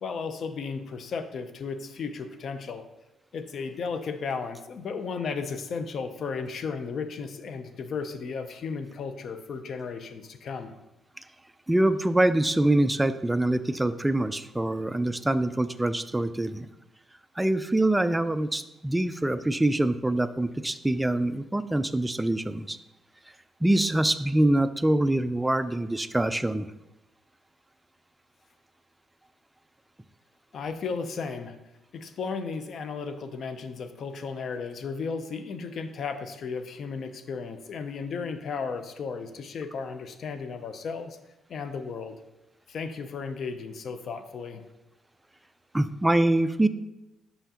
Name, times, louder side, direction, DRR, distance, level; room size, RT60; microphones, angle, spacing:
voice 1, 0.0-2.8 3.3-10.7 30.5-31.6 31.9-41.2 41.5-42.2 42.7-44.6, left 5 dB, 60° left, 9 dB, 0.5 m, -34 dB
voice 2, 11.7-16.7 17.4-22.8 23.6-26.7 45.7-46.7, right 1 dB, 10° right, 12 dB, 0.3 m, -24 dB
5.8 x 5.6 x 2.9 m, 0.96 s
cardioid pair, 90°, 0 cm